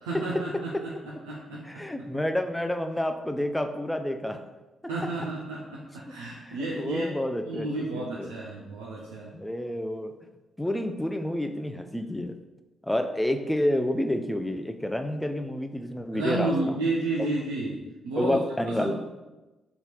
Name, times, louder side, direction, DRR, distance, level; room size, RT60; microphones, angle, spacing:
voice 1, 0.0-2.1 4.9-7.1 7.4-9.3 16.1-18.4 18.7-18.9, right 2 dB, 80° right, -6 dB, 0.3 m, -31 dB
voice 2, 1.7-4.4 6.4-8.3 9.3-10.1 10.6-12.3 12.8-16.7 17.2-17.3 18.2-18.9, left 1 dB, 10° left, 7 dB, 0.3 m, -29 dB
2.7 x 2.3 x 3.1 m, 1.1 s
hypercardioid pair, 40°, 0 cm